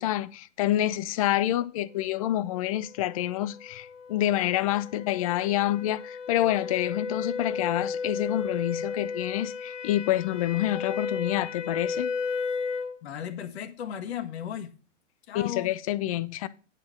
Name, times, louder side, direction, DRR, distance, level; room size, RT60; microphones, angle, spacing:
voice 1, 0.0-12.1 15.3-16.5, left 13 dB, 30° left, 0.5 m, -27 dB
sound 1, 3.1-13.0, left 5 dB, 80° left, 1.3 m, -34 dB
voice 2, 13.0-14.7 15.3-15.7, left 9 dB, 55° left, 1.5 m, -35 dB
9.9 x 4.4 x 7.0 m
hypercardioid pair, 130°, 37 cm